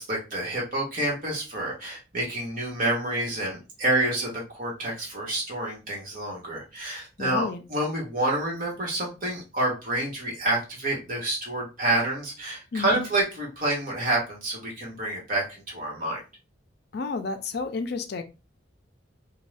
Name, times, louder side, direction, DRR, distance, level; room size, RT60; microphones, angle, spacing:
voice 1, 0.0-16.2, right 1 dB, 45° right, 1.1 m, -28 dB
voice 2, 7.2-7.6 12.7-13.0 16.9-18.2, left 4 dB, 55° left, 0.4 m, -31 dB
2.6 x 2.2 x 3.2 m
head